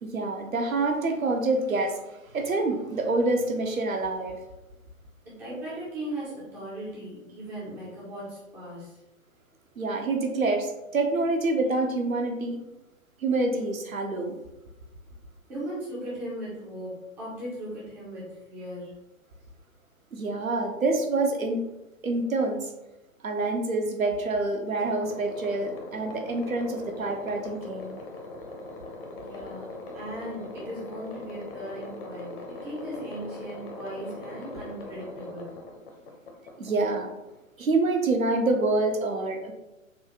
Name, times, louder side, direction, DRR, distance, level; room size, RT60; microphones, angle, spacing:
voice 1, 0.0-2.0 2.3-4.4 9.8-12.6 13.2-14.4 20.1-21.7 22.0-22.7 23.2-28.0 36.6-37.1 37.6-39.5, right 2 dB, 75° right, 3 dB, 0.9 m, -27 dB
voice 2, 5.2-9.0 15.5-18.9 29.2-35.6, right 1 dB, 5° right, -8 dB, 0.4 m, -38 dB
sound 1, 24.8-37.4, left 2 dB, 45° left, 0.8 m, -41 dB
6.3 x 2.3 x 2.9 m, 0.99 s
figure-of-eight pair, 120°, 41 cm